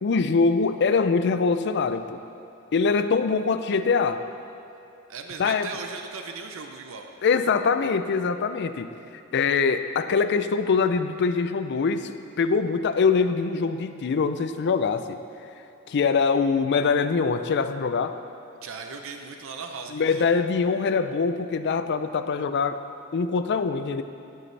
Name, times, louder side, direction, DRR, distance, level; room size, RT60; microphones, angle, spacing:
voice 1, 0.0-2.2 2.7-4.2 5.4-5.7 7.2-8.9 9.3-15.2 15.9-18.1 19.9-22.8 23.1-24.0, left 5 dB, 55° left, 10 dB, 0.4 m, -23 dB
voice 2, 5.1-7.1 18.6-20.3, right 5 dB, 65° right, 4 dB, 0.6 m, -37 dB
13.5 x 7.7 x 3.3 m, 2.7 s
head